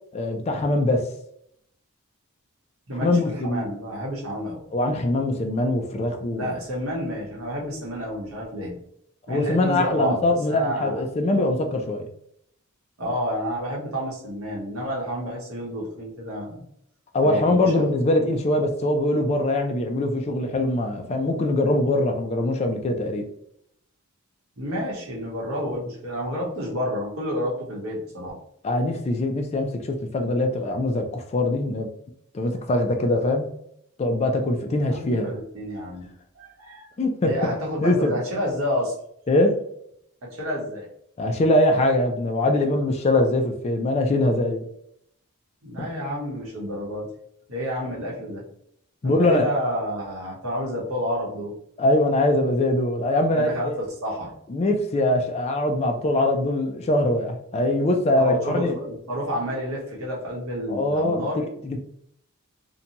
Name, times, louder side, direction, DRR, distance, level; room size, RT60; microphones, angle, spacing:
voice 1, 0.1-1.0 3.0-3.6 4.7-6.5 9.3-12.1 17.1-23.3 28.6-31.9 32.3-33.5 34.0-35.4 37.0-37.5 37.8-38.2 39.3-39.6 41.2-44.7 45.8-45.9 49.0-49.5 51.8-53.7 54.5-58.8 60.7-61.8, left 1 dB, 30° left, 4 dB, 0.3 m, -22 dB
voice 2, 2.9-4.6 6.3-8.8 9.3-11.0 13.0-16.7 17.2-17.9 24.6-28.4 34.9-36.0 36.3-36.9 37.2-38.9 40.2-40.9 45.6-47.1 47.5-48.4 49.0-51.5 53.3-54.3 58.1-61.4, equal, 70° right, -3 dB, 0.9 m, -30 dB
2.6 x 2.2 x 2.8 m, 0.73 s
head